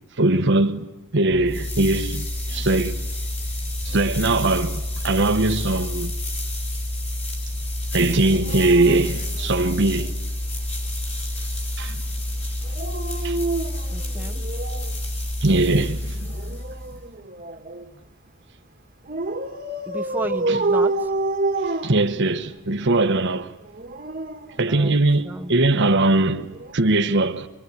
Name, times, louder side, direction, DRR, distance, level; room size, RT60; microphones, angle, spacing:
voice 1, 0.2-0.9 1.1-3.0 3.8-6.2 7.9-10.1 11.8-12.0 13.2-13.4 15.4-16.3 20.5-20.6 21.8-23.5 24.6-27.5, right 2 dB, 55° right, 1.1 m, -21 dB
sound 1, 1.3-17.1, left 1 dB, 30° left, 5.4 m, -29 dB
Dog, 8.3-10.2 12.6-15.0 16.3-17.9 19.1-22.6 23.6-25.3 26.5-26.7, right 2 dB, 40° right, 1.6 m, -28 dB
voice 2, 13.9-14.4 19.9-21.1 24.7-25.6, right 2 dB, 10° right, 1.0 m, -33 dB
24.5 x 23.5 x 9.5 m
head